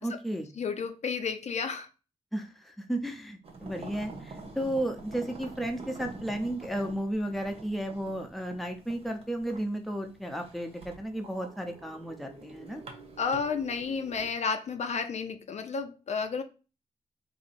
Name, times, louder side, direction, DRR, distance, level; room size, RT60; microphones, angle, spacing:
voice 1, 0.0-0.5 2.3-12.8, right 1 dB, ahead, 0.7 m, -33 dB
voice 2, 0.6-1.9 13.2-16.4, left 5 dB, 60° left, 0.5 m, -31 dB
sound 1, 3.4-14.3, right 3 dB, 50° right, 1.0 m, -47 dB
4.0 x 2.7 x 4.2 m
wide cardioid pair, 145°, 13 cm